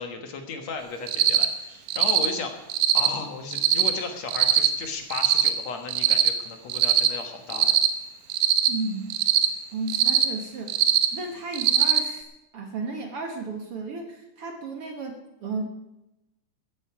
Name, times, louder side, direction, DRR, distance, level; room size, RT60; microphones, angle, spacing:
voice 1, 0.0-2.6 2.9-7.8, left 4 dB, 60° left, 5 dB, 2.6 m, -35 dB
Cricket, 1.1-1.5 1.9-2.3 2.7-3.1 3.5-3.9 4.3-4.7 5.1-5.5 5.9-6.3 6.7-7.1 7.5-7.9 8.3-8.7 9.1-9.5 9.9-10.2 10.7-11.1 11.5-12.0, right 11 dB, 75° right, 2.6 m, -20 dB
voice 2, 8.7-9.1 9.7-10.8 11.1-12.3 12.5-15.6, right 3 dB, 55° right, 4 dB, 2.0 m, -33 dB
14.5 x 14.5 x 4.9 m, 0.95 s
omnidirectional pair, 3.7 m